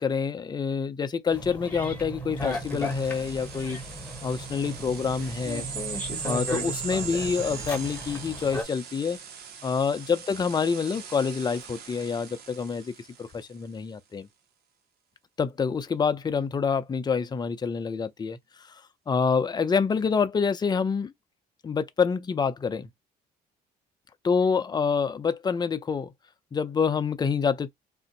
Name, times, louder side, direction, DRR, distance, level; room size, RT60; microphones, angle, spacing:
voice 1, 0.0-3.8 4.2-5.7 6.2-9.2 9.6-12.9 13.2-14.3 15.4-18.4 19.1-21.1 21.6-22.9 24.2-26.1 26.5-27.7, left 5 dB, 25° left, 0.5 m, -27 dB
sound 1, 1.3-8.6, left 1 dB, 10° left, 0.9 m, -35 dB
sound 2, 2.4-13.5, right 7 dB, 70° right, 0.8 m, -40 dB
2.6 x 2.1 x 3.9 m
cardioid pair, 110°, 17 cm